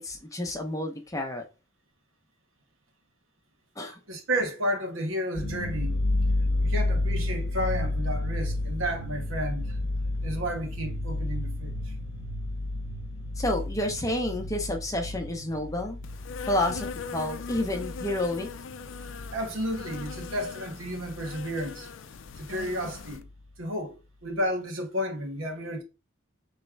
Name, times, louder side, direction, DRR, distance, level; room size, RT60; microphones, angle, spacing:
voice 1, 0.0-1.4 3.8-4.0 13.4-16.0 16.5-18.5, left 1 dB, 15° left, 0.7 m, -30 dB
voice 2, 4.1-6.0 6.6-9.8 10.2-11.7 19.0-21.9 22.4-23.3 23.6-23.9 24.2-25.8, equal, 80° right, 1.2 m, -32 dB
sound 1, 5.4-20.5 20.7-21.8 22.2-22.3 22.6-23.3, left 1 dB, 55° left, 0.9 m, -31 dB
Insect, 16.0-23.2, left 5 dB, 70° left, 0.4 m, -41 dB
3.7 x 3.1 x 4.5 m
head